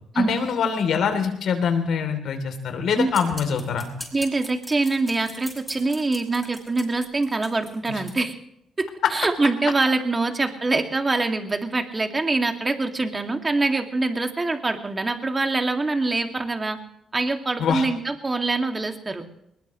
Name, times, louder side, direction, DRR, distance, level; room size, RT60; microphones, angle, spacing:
voice 1, 0.1-3.9 7.9-8.0 17.6-17.8, left 6 dB, 70° left, 7 dB, 3.3 m, -24 dB
sound 1, 3.1-8.2, equal, ahead, 6.1 m, -41 dB
voice 2, 4.1-8.4 8.8-16.8 17.1-19.2, right 3 dB, 25° right, 5 dB, 2.4 m, -24 dB
21.0 x 20.5 x 3.2 m, 0.78 s
cardioid pair, 90°, 0 cm